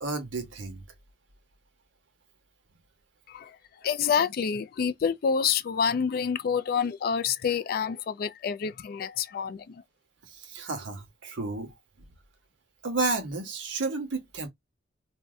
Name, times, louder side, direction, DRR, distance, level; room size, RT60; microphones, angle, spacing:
voice 1, 0.0-0.8 10.2-11.7 12.8-14.5, right 3 dB, 80° right, 0.9 m, -32 dB
voice 2, 3.8-9.8, left 6 dB, 50° left, 0.3 m, -28 dB
2.7 x 2.1 x 3.3 m
head